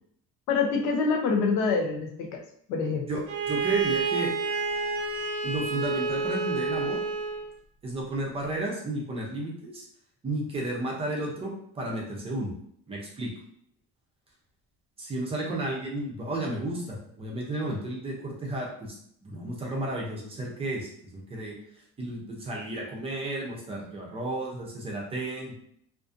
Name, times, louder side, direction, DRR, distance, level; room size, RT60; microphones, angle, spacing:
voice 1, 0.5-2.4 2.7-3.1, left 4 dB, 80° left, 2 dB, 0.6 m, -26 dB
voice 2, 3.1-4.3 5.4-7.0 7.8-9.8 10.2-12.5 12.9-13.3 15.0-19.0 19.2-21.5 22.0-25.6, right 1 dB, 20° right, -3 dB, 0.4 m, -32 dB
Bowed string instrument, 3.3-7.5, right 4 dB, 75° right, 0.5 m, -29 dB
2.5 x 2.4 x 2.4 m, 0.69 s
cardioid pair, 170°, 30 cm